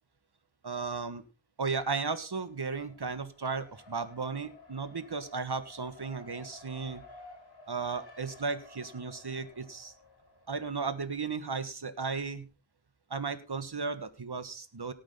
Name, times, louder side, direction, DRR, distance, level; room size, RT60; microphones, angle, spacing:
voice 1, 0.6-1.2 1.6-7.0 7.7-9.9 10.5-12.5 13.1-14.9, right 4 dB, 55° right, 12 dB, 1.7 m, -35 dB
Race car auto racing, 2.4-11.5, left 2 dB, 55° left, 5.7 m, -54 dB
18.0 x 8.7 x 3.8 m, 0.33 s
wide cardioid pair, 55°, 48 cm